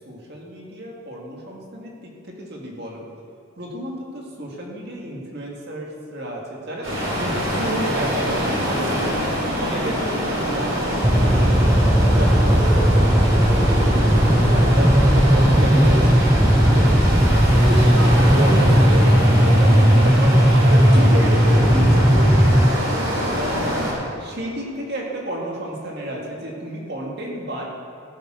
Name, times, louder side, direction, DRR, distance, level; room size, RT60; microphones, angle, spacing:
voice 1, 0.0-3.1 3.6-9.1 9.6-11.7 12.1-16.3 16.6-17.0 17.6-22.6 23.4-23.8 24.2-27.6, equal, 50° right, -2 dB, 2.1 m, -31 dB
sound 1, 6.8-23.9, equal, 65° right, 3.1 m, -24 dB
sound 2, 11.0-22.7, equal, 5° right, 0.3 m, -16 dB
14.5 x 7.0 x 6.3 m, 2.7 s
head